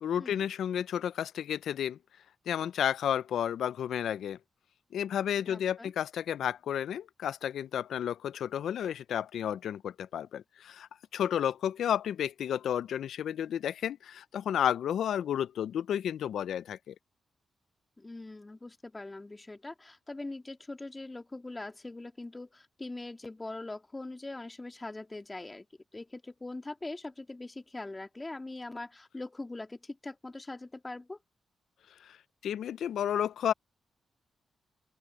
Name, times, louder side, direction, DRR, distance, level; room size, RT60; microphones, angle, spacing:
voice 1, 0.0-2.0 2.5-4.4 4.9-16.9 32.0-32.2 32.4-33.5, left 9 dB, 80° left, 0.5 m, -32 dB
voice 2, 5.5-5.9 18.0-25.7 25.9-31.2, left 2 dB, 25° left, 2.3 m, -42 dB
open air
cardioid pair, 60°, 0 cm